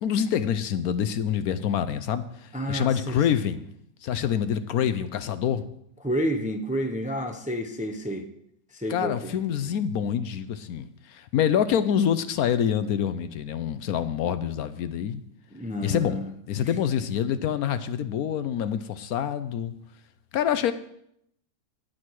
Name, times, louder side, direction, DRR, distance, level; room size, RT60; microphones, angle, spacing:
voice 1, 0.0-3.7 4.0-5.6 8.9-15.2 15.8-16.2 16.5-19.7 20.3-20.7, left 9 dB, 70° left, 1.0 m, -26 dB
voice 2, 2.5-3.2 6.0-8.3 8.7-9.4 15.5-16.3 16.6-16.7, equal, 10° right, 0.3 m, -30 dB
18.5 x 6.5 x 4.7 m
omnidirectional pair, 1.8 m